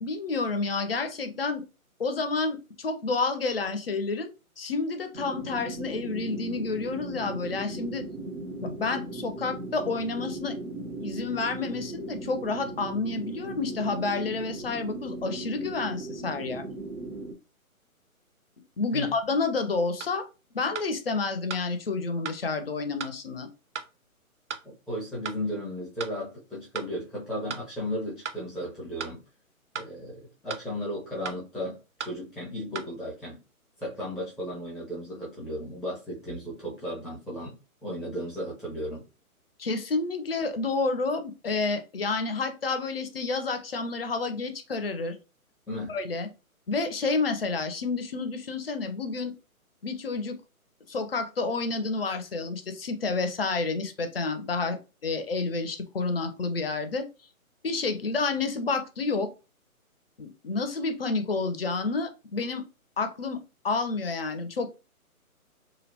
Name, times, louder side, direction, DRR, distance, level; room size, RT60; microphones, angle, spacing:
voice 1, 0.0-1.6 2.0-4.3 4.6-8.0 8.6-10.6 11.0-16.6 18.8-20.3 20.5-23.5 39.6-45.2 45.9-46.3 46.7-49.3 49.8-50.4 50.9-57.1 57.6-59.3 60.2-62.6 63.0-64.7, left 3 dB, 45° left, 0.4 m, -29 dB
sound 1, 5.1-17.3, right 2 dB, 90° right, 0.9 m, -38 dB
sound 2, 20.0-20.1 20.7-20.9 21.5-21.7 22.2-22.4 23.0-23.1 23.7-23.9 24.5-24.6 25.2-25.4 26.0-26.1 26.7-26.9 27.5-27.7 28.2-28.4 29.0-29.1 29.7-29.9 30.5-30.7 31.2-31.4 32.0-32.2 32.7-32.9, right 6 dB, 55° right, 0.5 m, -36 dB
voice 2, 24.9-29.2 29.7-33.4 33.8-37.6 37.8-39.0 45.7-46.0, equal, 5° right, 0.5 m, -35 dB
2.8 x 2.0 x 2.7 m
figure-of-eight pair, 150°, 43 cm